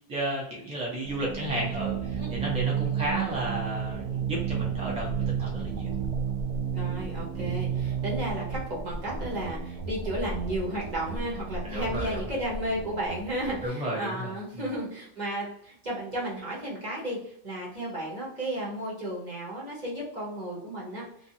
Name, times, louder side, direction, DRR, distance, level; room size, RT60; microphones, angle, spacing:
voice 1, 0.1-6.0 7.4-7.6 11.6-12.3 13.6-14.7, right 1 dB, 5° right, -5 dB, 0.6 m, -33 dB
sound 1, 1.0-13.7, right 7 dB, 70° right, 0.4 m, -32 dB
voice 2, 6.7-17.2 17.4-21.0, right 1 dB, 40° right, -5 dB, 1.0 m, -33 dB
2.6 x 2.4 x 2.7 m, 0.70 s
omnidirectional pair, 1.3 m